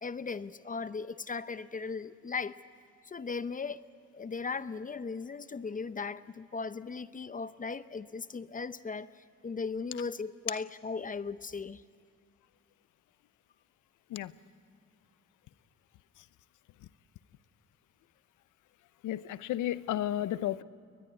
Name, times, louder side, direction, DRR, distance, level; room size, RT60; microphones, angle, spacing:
voice 1, 0.0-2.6 3.0-3.8 4.1-11.8, left 4 dB, 25° left, 14 dB, 0.6 m, -37 dB
voice 2, 19.0-20.6, left 12 dB, 85° left, 16 dB, 0.8 m, -32 dB
22.5 x 20.5 x 8.8 m, 2.3 s
cardioid pair, 90°, 30 cm